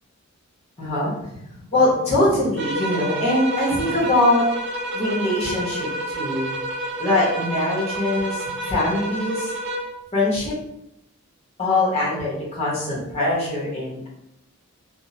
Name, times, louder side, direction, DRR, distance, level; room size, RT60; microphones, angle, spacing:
voice 1, 0.8-1.1 1.7-4.4 4.9-5.9 6.1-6.5 7.0-9.5 10.1-10.5 11.6-14.1, left 2 dB, 30° left, -7 dB, 1.0 m, -22 dB
sound 1, 2.6-10.0, right 1 dB, 55° right, 0.4 m, -29 dB
2.6 x 2.1 x 2.7 m, 0.80 s
head